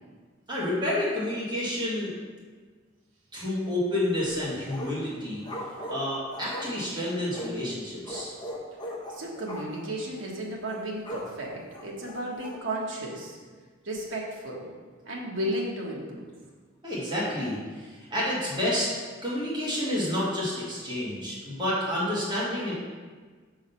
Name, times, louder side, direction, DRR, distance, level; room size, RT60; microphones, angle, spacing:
voice 1, 0.5-2.1 3.3-5.4 5.9-8.3 16.8-18.9 19.2-22.7, left 1 dB, 25° right, -7 dB, 1.8 m, -29 dB
sound 1, 4.2-5.1 5.4-7.6 8.1-9.9 10.2-10.3 10.7-11.3 11.7-12.6, left 1 dB, 20° left, 0.8 m, -39 dB
voice 2, 9.1-13.4 13.8-14.7 15.0-16.3, right 1 dB, 70° right, -3 dB, 1.4 m, -34 dB
6.3 x 3.8 x 5.6 m, 1.5 s
head